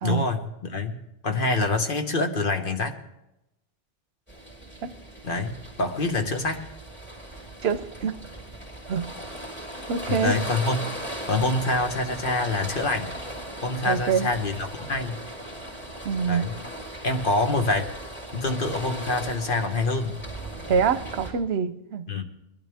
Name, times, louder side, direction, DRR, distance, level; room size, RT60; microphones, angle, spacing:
voice 1, 0.0-3.0 5.2-6.7 10.1-10.9 11.3-13.1 13.6-15.2 16.3-16.5 17.0-17.9 18.3-20.2 22.1-22.2, left 2 dB, 55° left, 5 dB, 1.3 m, -26 dB
sound 1, 4.3-21.3, right 1 dB, 10° left, 3.6 m, -38 dB
voice 2, 7.6-8.1 8.9-9.1 9.9-10.3 13.8-14.3 16.0-16.5 20.7-22.2, right 6 dB, 75° right, 13 dB, 1.0 m, -25 dB
21.0 x 12.5 x 3.5 m, 0.87 s
omnidirectional pair, 1.1 m